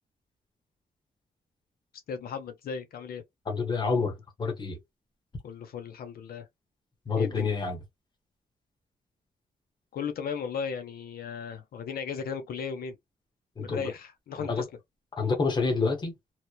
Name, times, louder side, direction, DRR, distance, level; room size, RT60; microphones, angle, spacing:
voice 1, 2.1-3.2 5.4-6.5 7.2-7.5 9.9-13.0 13.6-14.7, left 6 dB, 85° left, 0.6 m, -36 dB
voice 2, 3.5-4.8 7.1-7.8 13.6-13.9 14.4-14.6 15.2-16.1, left 4 dB, 30° left, 1.0 m, -28 dB
3.0 x 2.1 x 2.3 m
wide cardioid pair, 160°, 15 cm